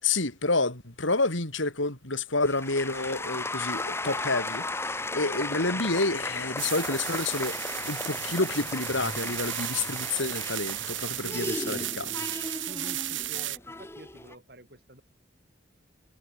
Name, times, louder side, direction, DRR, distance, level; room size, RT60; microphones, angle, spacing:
voice 1, 0.0-12.1, left 3 dB, 80° left, 4.6 m, -29 dB
sound 1, 2.4-14.4, left 2 dB, 15° left, 2.0 m, -35 dB
sound 2, 6.6-13.6, right 15 dB, 80° right, 2.5 m, -35 dB
voice 2, 11.2-11.9 12.7-15.0, right 1 dB, 55° right, 7.6 m, -47 dB
head